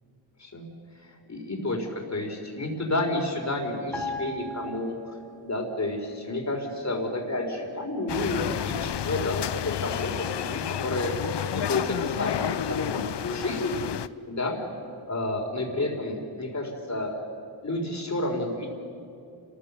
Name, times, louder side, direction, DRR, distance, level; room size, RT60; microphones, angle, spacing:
voice 1, 1.0-5.1 5.4-11.1 11.5-13.7 14.3-14.6 15.1-17.2 17.6-18.7, left 2 dB, 35° left, 2 dB, 3.9 m, -30 dB
sound 1, 3.9-5.6 5.8-6.0, left 1 dB, ahead, 3.1 m, -37 dB
sound 2, 8.1-14.1, left 9 dB, 65° left, 0.7 m, -30 dB
29.5 x 14.5 x 7.0 m, 2.5 s
wide cardioid pair, 80°, 45 cm